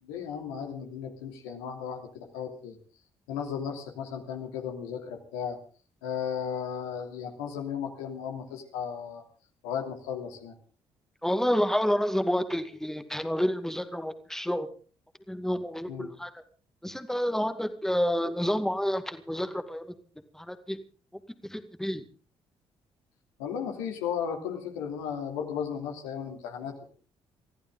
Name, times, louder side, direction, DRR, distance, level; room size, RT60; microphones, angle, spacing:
voice 1, 0.0-2.8 3.3-5.6 6.0-9.2 9.6-10.5 15.9-16.1 23.4-26.9, left 7 dB, 75° left, 3 dB, 2.9 m, -35 dB
voice 2, 11.2-14.7 15.3-16.3 16.8-19.9 20.3-20.8 21.5-22.0, equal, 5° left, 8 dB, 2.1 m, -29 dB
24.5 x 15.0 x 3.8 m, 0.38 s
figure-of-eight pair, 45°, 14 cm